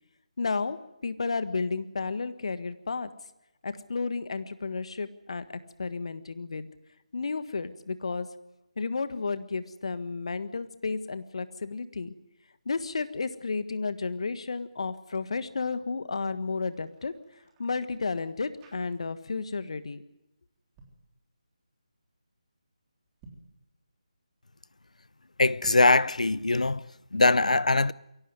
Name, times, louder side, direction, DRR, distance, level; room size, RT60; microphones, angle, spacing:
voice 1, 0.4-0.8 1.0-3.1 3.6-6.7 7.1-8.3 8.8-12.1 12.6-17.1 17.6-20.0, left 4 dB, 55° left, 1.6 m, -32 dB
sound 1, 16.5-19.4 19.7-20.0 20.6-21.1 23.1-23.6 25.5-26.0, right 2 dB, 15° right, 3.4 m, -56 dB
voice 2, 25.4-27.9, left 2 dB, 75° left, 0.8 m, -22 dB
23.5 x 17.5 x 9.5 m
figure-of-eight pair, 155°, 4 cm